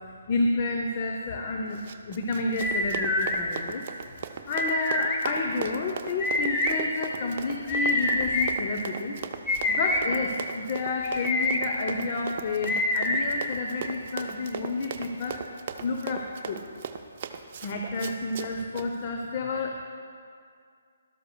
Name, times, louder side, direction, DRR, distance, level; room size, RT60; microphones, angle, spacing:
voice 1, 0.3-1.8 2.1-3.8 4.2-9.2 9.7-15.4 15.8-16.6 17.6-19.9, left 3 dB, 40° left, 2 dB, 0.7 m, -30 dB
Run, 1.7-18.9, right 7 dB, 45° right, 0.6 m, -38 dB
sound 1, 2.6-3.4 4.5-5.2 6.2-6.7 7.7-8.5 9.5-10.0 11.0-11.6 12.7-13.2, left 2 dB, 15° left, 0.9 m, -26 dB
12.5 x 12.5 x 2.3 m, 2.3 s
figure-of-eight pair, 140°, 0 cm